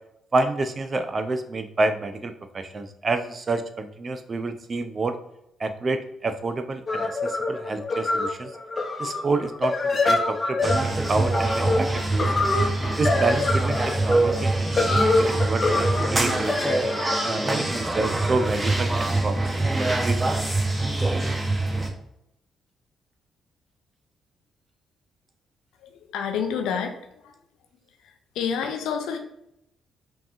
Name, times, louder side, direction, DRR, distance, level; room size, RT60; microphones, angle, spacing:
voice 1, 0.3-5.2 5.6-8.5 9.0-9.8 10.1-12.3 13.0-14.5 14.8-16.6 17.2-20.2, right 3 dB, 40° right, 9 dB, 0.5 m, -28 dB
sound 1, 6.9-18.5, left 2 dB, 35° left, 0.8 m, -26 dB
sound 2, 10.6-21.9, right 2 dB, 20° right, 0.9 m, -24 dB
voice 2, 25.8-27.4 28.0-29.2, left 7 dB, 70° left, 5 dB, 0.5 m, -29 dB
5.2 x 2.9 x 2.5 m, 0.81 s
hypercardioid pair, 45°, 0 cm